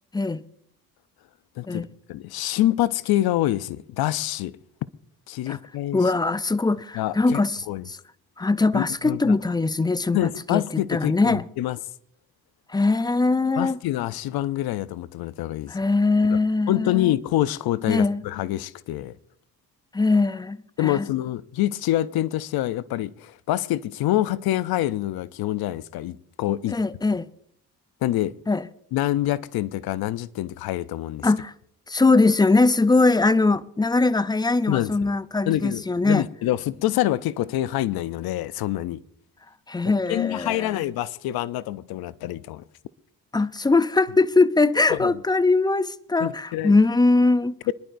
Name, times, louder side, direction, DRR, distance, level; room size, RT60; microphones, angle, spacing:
voice 1, 1.6-4.6 5.3-6.0 6.9-7.4 7.7-7.8 8.7-9.4 10.1-11.8 13.6-15.8 16.3-16.4 16.7-19.1 20.8-26.8 28.0-28.3 28.9-31.3 34.7-35.0 35.5-39.0 39.8-42.6 44.9-45.1 46.2-46.7 47.7-47.8, left 14 dB, 75° left, 0.6 m, -26 dB
voice 2, 5.9-8.0 8.4-11.5 12.7-13.8 15.7-17.1 17.9-18.2 19.9-21.1 26.7-27.3 28.5-28.7 31.2-31.5 31.9-36.3 39.7-40.7 43.3-47.6, left 3 dB, 10° left, 0.5 m, -21 dB
24.5 x 11.0 x 2.6 m
supercardioid pair, 65°, 37 cm